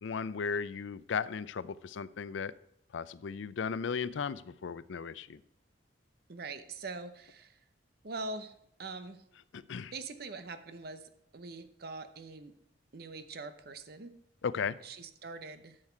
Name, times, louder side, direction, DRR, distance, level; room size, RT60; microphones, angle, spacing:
voice 1, 0.0-2.5 2.9-5.4 9.7-9.9 14.4-14.8, left 6 dB, 80° left, 17 dB, 0.4 m, -36 dB
voice 2, 6.3-7.6 8.0-8.5 8.8-9.2 9.9-12.5 12.9-14.1 14.8-15.8, right 3 dB, 55° right, 10 dB, 0.8 m, -43 dB
11.0 x 6.5 x 4.5 m, 0.78 s
head